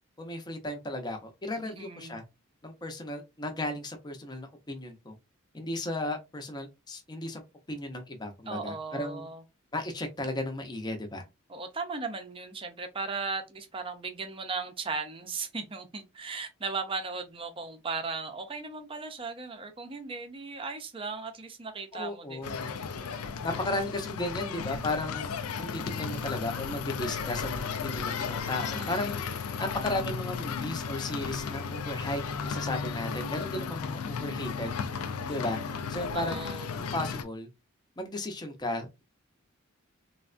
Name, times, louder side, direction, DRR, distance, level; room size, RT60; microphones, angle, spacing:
voice 1, 0.2-2.2 2.6-5.1 5.5-7.4 7.7-9.3 9.7-11.2 21.9-22.7 23.4-25.3 25.6-29.2 29.6-34.7 35.3-35.6 35.9-36.4 36.8-37.5 38.0-39.0, left 1 dB, 20° left, 0.6 m, -35 dB
voice 2, 1.7-2.2 8.5-9.4 11.5-22.4 28.6-29.1 36.1-36.7, right 4 dB, 25° right, 0.5 m, -37 dB
sound 1, 22.4-37.2, left 6 dB, 90° left, 0.4 m, -34 dB
3.4 x 2.1 x 2.4 m
head